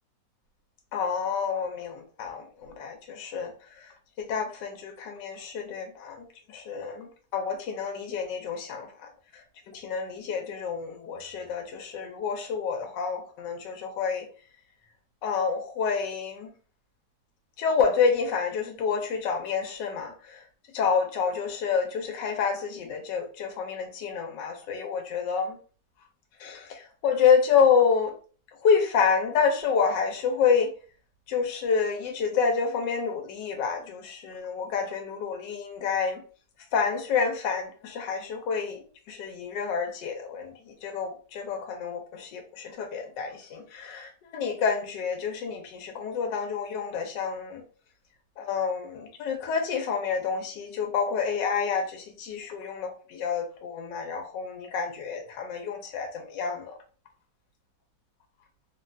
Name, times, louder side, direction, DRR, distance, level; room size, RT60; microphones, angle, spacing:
voice 1, 0.9-14.3 15.2-16.5 17.6-20.4 20.7-25.6 26.4-28.2 28.6-30.7 31.3-36.2 36.7-47.6 48.4-56.8, left 6 dB, 80° left, 3 dB, 1.3 m, -28 dB
3.4 x 2.2 x 2.5 m, 0.39 s
omnidirectional pair, 1.9 m